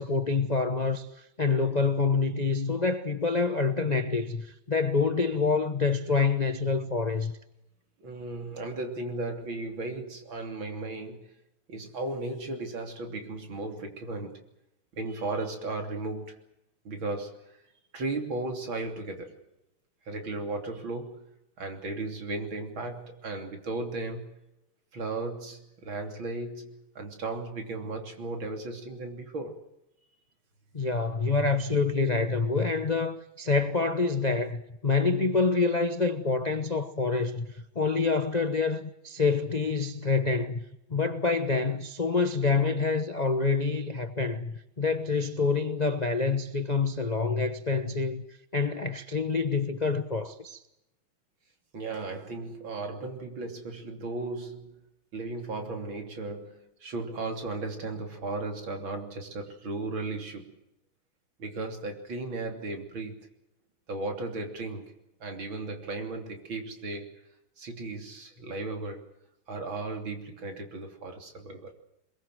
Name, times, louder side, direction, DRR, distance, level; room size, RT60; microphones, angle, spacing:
voice 1, 0.0-7.3 30.7-37.5 37.7-40.6 40.9-48.2 48.5-50.6, left 4 dB, 35° left, 0.7 m, -27 dB
voice 2, 8.0-11.2 11.7-14.4 14.9-16.4 16.9-17.6 17.9-19.4 20.1-21.3 21.6-24.3 24.9-29.6 51.7-54.8 55.1-60.6 61.4-63.3 63.9-64.9 65.2-67.1 67.6-69.0 69.5-71.7, right 2 dB, 65° right, 3.8 m, -35 dB
23.5 x 22.0 x 7.7 m
omnidirectional pair, 2.4 m